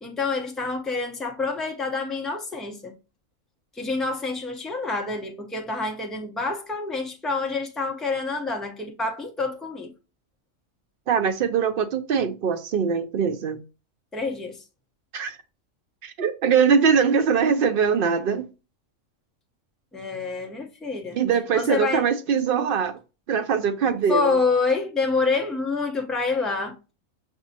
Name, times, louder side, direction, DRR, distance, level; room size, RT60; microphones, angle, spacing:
voice 1, 0.0-2.9 3.7-9.9 14.1-14.6 19.9-21.2 21.5-22.1 24.1-26.8, left 4 dB, ahead, 0.3 m, -27 dB
voice 2, 11.1-13.6 15.1-15.4 16.0-18.4 21.1-23.0 23.3-24.4, right 6 dB, 60° right, 0.6 m, -22 dB
6.0 x 2.7 x 2.7 m
omnidirectional pair, 1.4 m